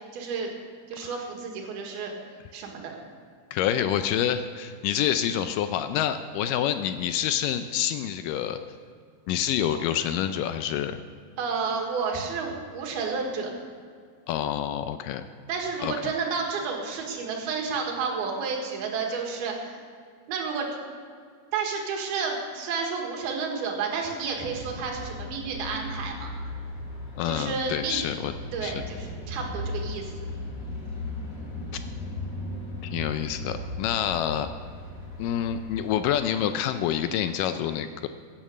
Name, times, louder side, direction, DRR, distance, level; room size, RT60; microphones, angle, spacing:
voice 1, 0.1-0.5 0.9-2.1 2.5-2.9 11.4-13.5 15.5-19.8 20.3-20.7 21.5-26.3 27.3-28.1 28.5-30.1, right 5 dB, 85° right, 1 dB, 3.5 m, -31 dB
voice 2, 3.5-8.6 9.3-11.0 14.3-15.3 15.8-15.9 27.2-28.3 28.6-28.8 32.8-34.5 35.2-38.1, left 10 dB, 80° left, 9 dB, 1.9 m, -27 dB
sound 1, 24.3-36.1, left 1 dB, 20° left, 3.9 m, -37 dB
15.0 x 9.1 x 6.5 m, 2.1 s
omnidirectional pair, 4.4 m